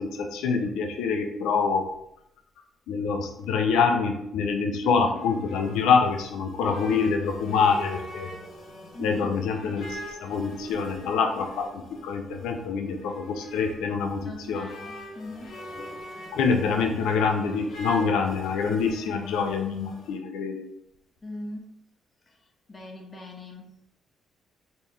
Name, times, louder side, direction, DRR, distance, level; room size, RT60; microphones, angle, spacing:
voice 1, 0.0-1.9 2.9-8.3 9.0-14.7 16.3-20.7, left 5 dB, 90° left, 4 dB, 0.5 m, -26 dB
sound 1, 4.8-20.2, left 1 dB, 60° left, 0.9 m, -44 dB
voice 2, 4.8-5.2 8.9-9.3 14.2-15.5 21.2-21.7 22.3-22.4 22.7-23.7, left 1 dB, 25° left, 0 dB, 0.7 m, -40 dB
3.2 x 2.5 x 3.6 m, 0.78 s
cardioid pair, 90°, 0 cm